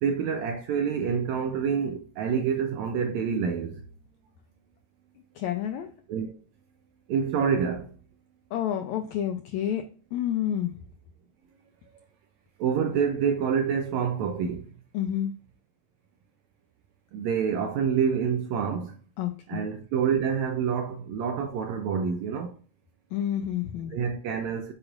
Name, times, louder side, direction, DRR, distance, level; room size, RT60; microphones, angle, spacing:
voice 1, 0.0-3.8 6.1-6.4 7.1-7.9 12.6-14.6 17.1-19.0 19.5-22.5 23.9-24.7, right 7 dB, 85° right, 1.6 m, -27 dB
voice 2, 5.3-5.9 8.5-9.8 10.1-10.8 14.9-15.3 19.2-19.7 23.1-23.9, left 10 dB, 85° left, 1.6 m, -29 dB
7.9 x 4.8 x 2.4 m
omnidirectional pair, 3.9 m